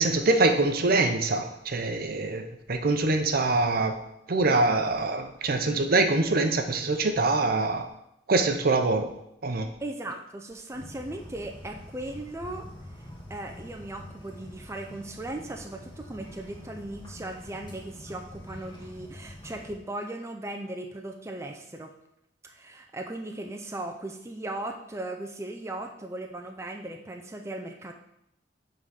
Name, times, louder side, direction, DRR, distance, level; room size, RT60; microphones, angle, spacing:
voice 1, 0.0-3.9 4.3-7.9 8.3-9.1 9.4-9.7, right 3 dB, 55° right, 6 dB, 0.7 m, -24 dB
voice 2, 9.8-12.6 13.3-21.9 22.4-27.9, right 1 dB, 15° right, 3 dB, 0.5 m, -37 dB
sound 1, 10.7-19.7, left 1 dB, 25° left, 2.2 m, -45 dB
7.9 x 3.9 x 5.7 m, 0.79 s
head